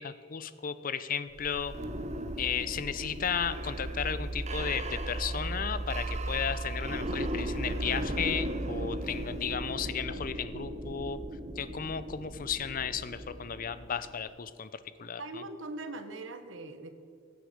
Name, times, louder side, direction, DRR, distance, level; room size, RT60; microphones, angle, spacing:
voice 1, 0.0-1.7 2.4-11.2 11.6-15.4, left 7 dB, 45° left, 14 dB, 0.6 m, -34 dB
sound 1, 1.3-14.1, right 1 dB, 35° right, 0.7 m, -36 dB
voice 2, 15.2-16.9, right 2 dB, 80° right, 8 dB, 1.1 m, -41 dB
16.5 x 8.0 x 5.2 m, 2.5 s
head